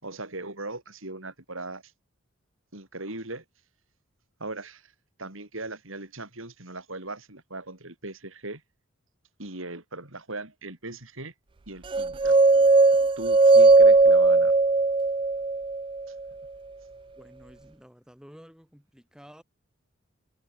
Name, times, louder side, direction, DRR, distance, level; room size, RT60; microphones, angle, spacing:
voice 1, 0.0-1.8 2.7-3.4 4.4-4.9 5.2-8.6 9.4-11.3 11.7-12.4 13.2-14.5, right 2 dB, 70° right, 5.7 m, -38 dB
sound 1, 11.9-16.0, right 3 dB, 25° right, 0.3 m, -18 dB
voice 2, 17.2-19.4, equal, 5° right, 7.8 m, -51 dB
head